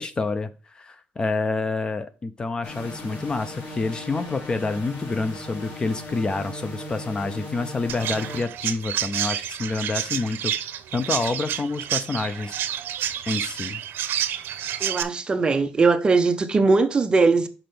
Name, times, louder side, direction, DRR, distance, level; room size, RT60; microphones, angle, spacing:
voice 1, 0.0-10.5 10.9-12.6 13.3-13.8, left 3 dB, 25° left, 0.5 m, -28 dB
sound 1, 2.6-8.4, left 1 dB, 85° left, 2.6 m, -37 dB
Chirp tweet, 7.9-15.0, right 10 dB, 85° right, 0.7 m, -29 dB
voice 2, 14.8-17.5, right 4 dB, 25° right, 0.7 m, -20 dB
6.0 x 4.3 x 5.1 m
cardioid pair, 165°, 4 cm